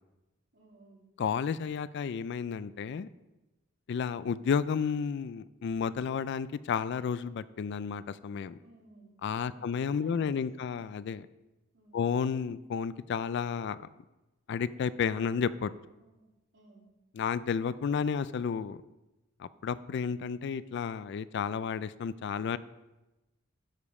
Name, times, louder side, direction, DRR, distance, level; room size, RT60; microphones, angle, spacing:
voice 1, 0.5-1.1 8.6-9.1 9.4-9.7 10.0-10.8 11.7-12.1 16.0-16.9, right 2 dB, 65° right, -4 dB, 3.0 m, -59 dB
voice 2, 1.2-3.1 3.9-8.6 9.2-11.3 11.9-13.8 14.5-15.7 17.2-18.8 19.4-22.6, left 6 dB, 60° left, 16 dB, 0.3 m, -32 dB
12.0 x 5.1 x 4.8 m, 1.0 s
head